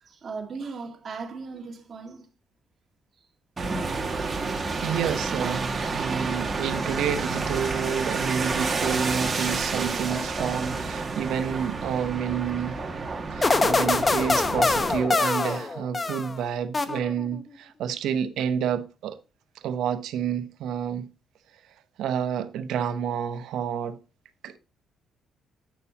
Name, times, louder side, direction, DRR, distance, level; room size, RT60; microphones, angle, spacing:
voice 1, 0.1-2.3 4.3-4.4 5.7-6.4, right 4 dB, 45° right, 2.0 m, -38 dB
sound 1, 3.6-15.0, right 3 dB, 30° right, 1.9 m, -30 dB
voice 2, 4.8-12.8 13.3-19.1 19.6-21.0 22.0-24.0 24.4-24.6, right 8 dB, 80° right, 0.8 m, -29 dB
sound 2, 13.4-16.4 16.7-17.4, left 3 dB, 25° left, 0.9 m, -24 dB
9.0 x 6.9 x 2.9 m
cardioid pair, 90°, 0 cm